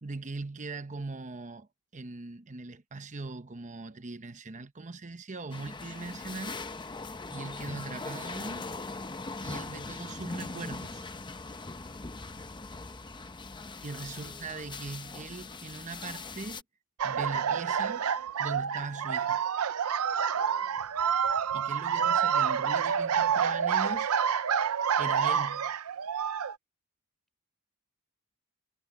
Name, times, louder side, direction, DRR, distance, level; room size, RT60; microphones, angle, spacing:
voice 1, 0.0-6.6 7.3-8.7 9.4-11.1 13.8-16.6 17.0-18.0 18.4-19.4 21.5-24.1 25.0-25.7, right 3 dB, 35° right, 0.9 m, -40 dB
sound 1, 5.5-16.6, left 3 dB, 20° left, 0.7 m, -40 dB
sound 2, 17.0-26.5, right 7 dB, 75° right, 0.6 m, -28 dB
voice 2, 20.4-21.3, equal, ahead, 4.6 m, -62 dB
head